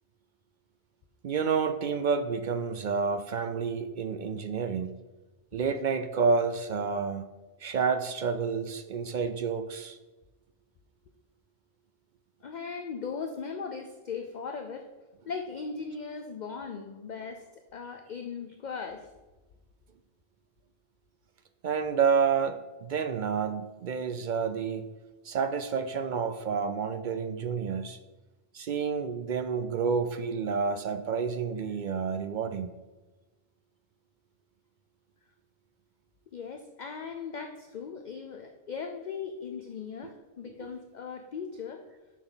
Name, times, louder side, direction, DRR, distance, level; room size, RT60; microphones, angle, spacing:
voice 1, 1.2-4.9 5.5-7.2 7.6-10.0 21.6-24.9 25.2-28.0 28.5-32.7, right 5 dB, 60° right, 10 dB, 0.5 m, -29 dB
voice 2, 12.4-14.9 15.3-19.1 36.3-41.8, left 5 dB, 50° left, 5 dB, 0.6 m, -38 dB
10.0 x 6.2 x 3.9 m, 1.2 s
omnidirectional pair, 1.2 m